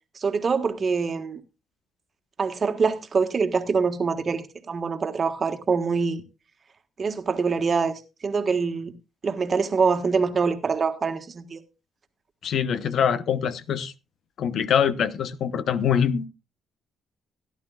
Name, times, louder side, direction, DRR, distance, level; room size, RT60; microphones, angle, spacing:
voice 1, 0.1-1.4 2.4-6.2 7.0-8.9 9.2-11.6, right 5 dB, 40° right, 1.5 m, -25 dB
voice 2, 12.4-13.9 14.4-16.3, left 8 dB, 65° left, 0.8 m, -24 dB
17.0 x 11.0 x 2.4 m
cardioid pair, 90°, 0 cm